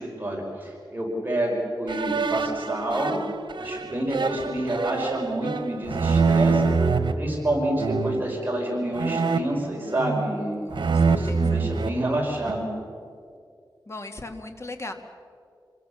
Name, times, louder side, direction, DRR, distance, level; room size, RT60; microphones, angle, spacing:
voice 1, 0.0-3.2 3.6-6.7 7.1-10.6 11.1-12.7, right 1 dB, 25° right, -2 dB, 5.1 m, -28 dB
sound 1, 1.9-7.1 7.8-8.3 8.9-10.4 10.7-12.7, right 4 dB, 80° right, 1.2 m, -25 dB
voice 2, 10.7-11.6 13.9-14.9, left 2 dB, 35° left, 5 dB, 2.0 m, -38 dB
27.5 x 21.0 x 7.1 m, 2.4 s
wide cardioid pair, 100°, 8 cm